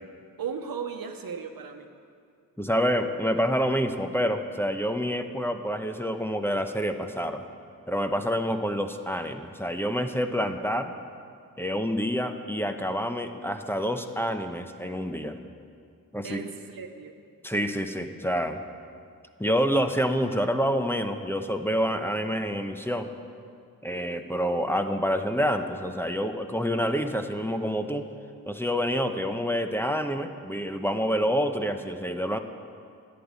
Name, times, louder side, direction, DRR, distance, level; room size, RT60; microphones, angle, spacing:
voice 1, 0.4-1.9 16.2-17.2, right 6 dB, 85° right, 6 dB, 1.0 m, -36 dB
voice 2, 2.6-7.4 7.9-10.9 11.6-15.4 16.1-16.4 17.4-18.6 19.4-23.1 23.8-28.1 28.5-32.4, equal, 5° left, 6 dB, 0.9 m, -27 dB
11.0 x 9.8 x 8.3 m, 2.3 s
cardioid pair, 60°, 34 cm